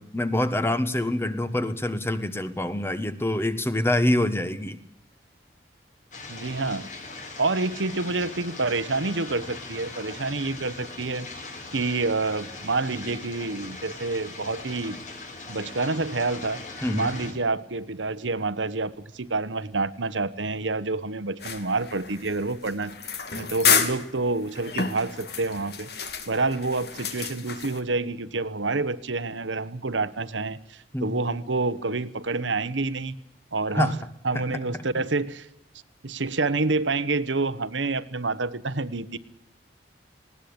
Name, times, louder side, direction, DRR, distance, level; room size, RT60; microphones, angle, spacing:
voice 1, 0.0-4.8 16.8-17.1 30.9-31.1 33.7-33.9, left 1 dB, 15° left, 12 dB, 1.2 m, -25 dB
sound 1, 6.1-17.3, left 3 dB, 45° left, 4.1 m, -40 dB
voice 2, 6.3-6.9 7.4-11.3 11.7-15.0 15.5-16.6 16.9-22.9 23.4-25.9 26.3-33.2 33.5-34.0 34.2-35.5 36.0-39.2, right 3 dB, 90° right, 14 dB, 1.2 m, -28 dB
sound 2, 21.4-27.8, left 6 dB, 60° left, 2.2 m, -29 dB
20.0 x 17.5 x 8.7 m, 0.75 s
head